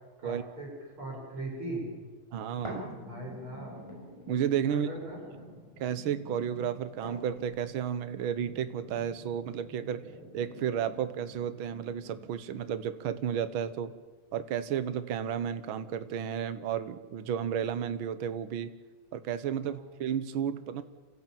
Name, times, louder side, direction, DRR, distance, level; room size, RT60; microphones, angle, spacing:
voice 1, 0.2-0.7 1.0-1.9 3.0-3.8 4.7-5.2 19.6-19.7, right 2 dB, 45° right, -2 dB, 7.6 m, -39 dB
voice 2, 2.3-3.0 4.3-4.9 5.8-10.0 10.3-13.9 14.3-18.7 19.1-20.8, right 9 dB, 60° right, 11 dB, 1.5 m, -32 dB
sound 1, 2.6-12.6 13.2-13.3, equal, 10° right, 6.5 m, -47 dB
27.0 x 15.5 x 8.9 m, 1.3 s
omnidirectional pair, 3.4 m